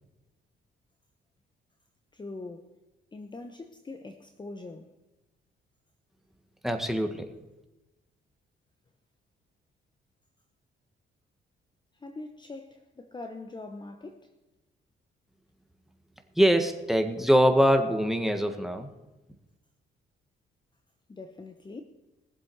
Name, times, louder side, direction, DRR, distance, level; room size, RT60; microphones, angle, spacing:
voice 1, 2.1-2.8 3.1-4.9 11.9-14.3 21.1-21.8, left 3 dB, 20° left, 1.0 m, -42 dB
voice 2, 6.6-7.3 16.4-18.9, equal, ahead, 1.5 m, -23 dB
20.5 x 7.6 x 4.7 m
cardioid pair, 90°, 20 cm